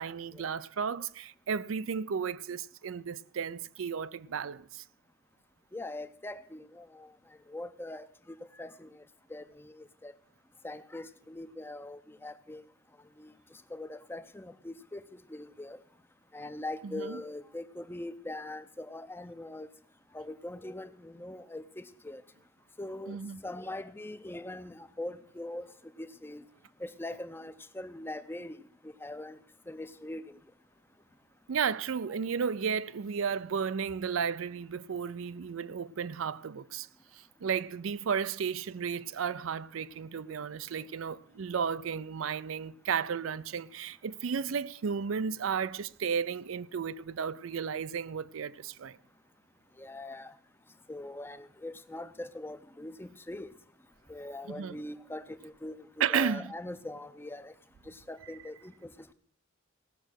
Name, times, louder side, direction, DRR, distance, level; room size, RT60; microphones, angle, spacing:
voice 1, 0.0-4.8 16.8-17.2 23.1-23.4 31.5-36.9 37.1-49.0 54.5-54.7 56.0-56.5 58.2-58.4, right 6 dB, 85° right, 0.5 m, -33 dB
voice 2, 5.7-7.1 7.5-8.0 8.6-8.9 9.3-10.1 10.6-12.6 13.2-13.3 13.7-15.0 15.3-15.8 16.3-19.7 20.1-22.2 22.8-25.7 26.0-26.4 26.8-28.6 28.8-29.4 29.7-30.4 49.8-50.3 50.9-53.5 54.1-57.5 57.9-59.1, left 1 dB, 10° left, 0.5 m, -42 dB
17.0 x 6.5 x 6.3 m
head